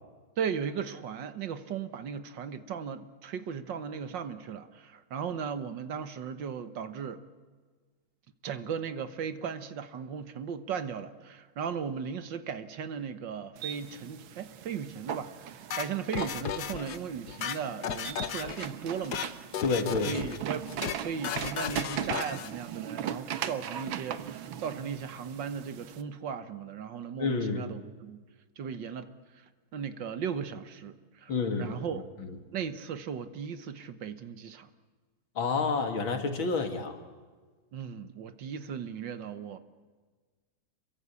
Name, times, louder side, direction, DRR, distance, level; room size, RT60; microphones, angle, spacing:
voice 1, 0.4-7.2 8.4-19.2 20.0-20.7 21.0-28.2 28.6-29.1 29.7-31.3 31.6-32.1 32.5-34.7 37.7-39.6, right 7 dB, 65° right, 11 dB, 1.8 m, -37 dB
sound 1, 13.6-26.0, right 9 dB, 85° right, 1.9 m, -39 dB
sound 2, 15.7-17.0 17.3-18.7 19.0-19.3 19.5-20.4 20.7-21.0 21.2-22.5, left 8 dB, 60° left, 1.5 m, -35 dB
voice 2, 19.6-20.1 27.2-27.7 31.3-32.4 35.4-37.0, left 4 dB, 80° left, 6 dB, 3.0 m, -29 dB
27.5 x 22.5 x 8.4 m, 1.4 s
omnidirectional pair, 2.2 m